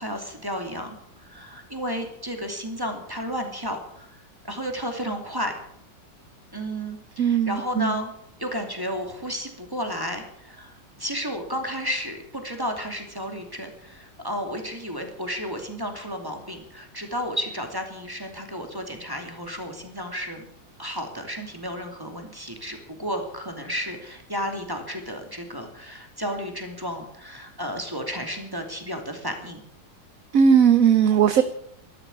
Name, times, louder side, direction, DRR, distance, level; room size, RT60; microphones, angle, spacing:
voice 1, 0.0-5.6 6.5-8.1 8.4-20.4 20.8-29.6, equal, 10° right, 4 dB, 2.7 m, -32 dB
voice 2, 7.2-8.0 30.3-31.4, right 7 dB, 55° right, 11 dB, 1.1 m, -18 dB
13.5 x 12.5 x 8.7 m, 0.69 s
omnidirectional pair, 1.9 m